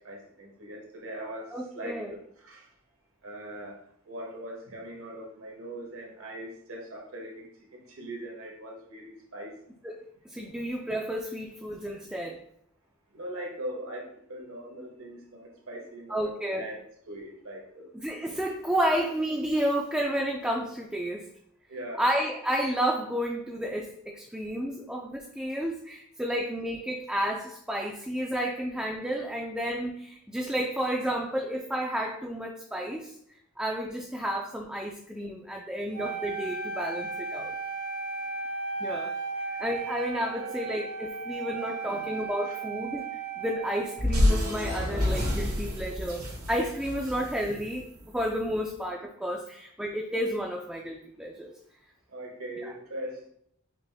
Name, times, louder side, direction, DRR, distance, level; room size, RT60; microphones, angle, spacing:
voice 1, 0.0-2.7 3.2-9.5 10.5-10.6 11.9-12.0 13.1-17.9 21.7-22.0 37.4-37.5 39.5-39.6 40.4-40.6 41.6-42.2 42.4-42.6 44.7-44.9 52.1-53.3, right 1 dB, 70° right, 1 dB, 1.1 m, -41 dB
voice 2, 1.5-2.1 9.8-12.4 16.1-16.6 17.9-21.3 22.0-33.1 33.6-37.5 38.8-39.1 39.6-43.1 43.4-47.9 48.1-51.5 52.6-52.7, equal, 5° right, -1 dB, 0.3 m, -31 dB
Wind instrument woodwind instrument, 35.9-44.2, right 4 dB, 50° right, 0.7 m, -35 dB
sound 1, 44.0-48.4, left 1 dB, 85° right, 1.4 m, -28 dB
5.0 x 2.4 x 3.4 m, 0.67 s
head